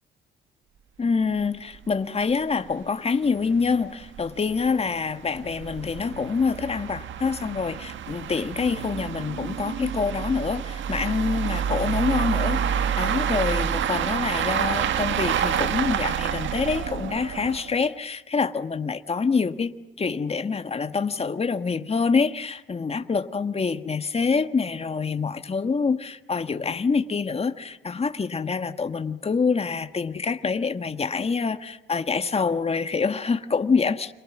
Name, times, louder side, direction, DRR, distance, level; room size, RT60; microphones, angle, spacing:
voice 1, 1.0-34.1, left 5 dB, 30° left, 1.7 m, -26 dB
sound 1, 1.4-1.5 1.8-1.9 2.3-2.4 2.7-2.8 3.4-17.8, right 8 dB, 70° right, 1.6 m, -28 dB
29.5 x 27.0 x 6.2 m
cardioid pair, 90°, 20 cm